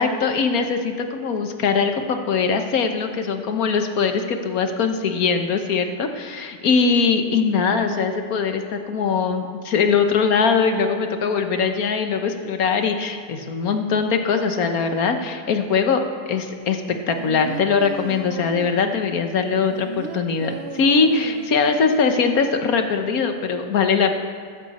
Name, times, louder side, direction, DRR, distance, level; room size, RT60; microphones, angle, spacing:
voice 1, 0.0-24.1, left 5 dB, 65° left, 6 dB, 1.4 m, -21 dB
sound 1, 16.9-18.8 19.4-21.8 22.1-22.2, right 6 dB, 65° right, 0.6 m, -35 dB
14.5 x 13.5 x 4.2 m, 2.1 s
omnidirectional pair, 1.8 m